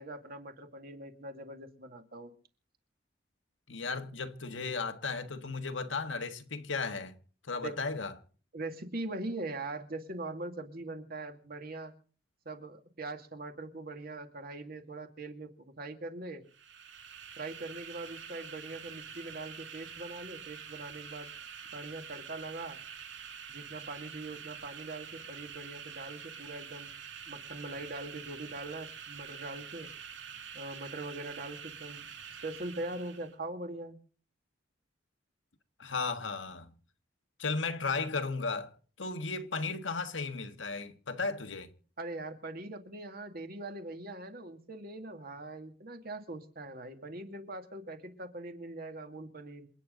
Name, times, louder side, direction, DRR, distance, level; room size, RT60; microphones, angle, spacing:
voice 1, 0.0-2.3 7.6-7.8 8.5-11.9 12.5-16.4 17.4-21.3 21.7-22.8 23.5-26.9 27.3-29.9 30.5-32.1 32.4-34.0 42.0-49.7, right 2 dB, 55° right, 2.3 m, -42 dB
voice 2, 3.7-7.2 7.5-8.1 35.8-36.7 37.4-38.7 39.0-41.7, left 4 dB, 90° left, 1.6 m, -35 dB
sound 1, 16.5-33.3, right 7 dB, 75° right, 2.5 m, -46 dB
27.5 x 9.6 x 3.9 m
head